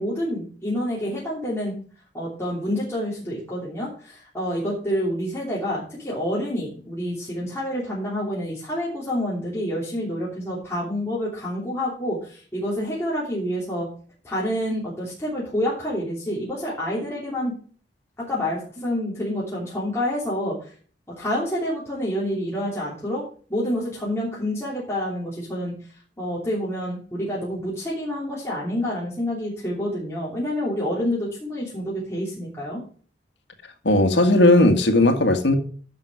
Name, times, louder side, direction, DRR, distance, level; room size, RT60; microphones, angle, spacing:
voice 1, 0.0-1.7 2.1-13.9 14.2-17.6 18.2-20.7 21.2-23.2 23.5-25.7 26.2-32.8, equal, 15° left, -6 dB, 3.1 m, -28 dB
voice 2, 33.8-35.5, left 1 dB, 80° left, 5 dB, 1.9 m, -16 dB
11.0 x 6.5 x 4.9 m, 0.42 s
head